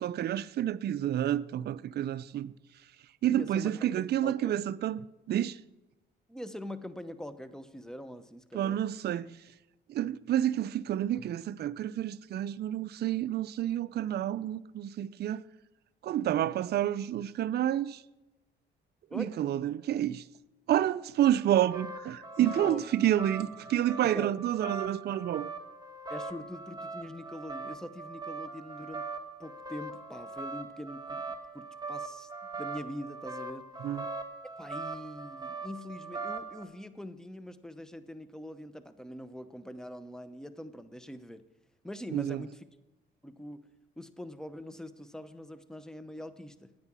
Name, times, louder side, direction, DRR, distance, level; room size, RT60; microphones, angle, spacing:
voice 1, 0.0-2.5 3.2-5.6 8.5-9.3 9.9-15.4 16.0-18.0 19.1-20.2 20.7-25.4 33.8-34.1 42.1-42.4, right 11 dB, 55° right, 0.4 m, -29 dB
voice 2, 3.3-4.6 6.3-8.8 19.1-19.3 22.4-22.8 24.1-24.3 26.1-29.0 29.4-32.3 32.6-33.7 34.6-41.4 41.8-42.6 43.2-43.7 44.0-46.8, left 1 dB, 5° left, 0.8 m, -43 dB
sound 1, 21.3-36.6, right 3 dB, 20° right, 1.3 m, -41 dB
9.5 x 8.9 x 6.1 m
cardioid pair, 90°, 20 cm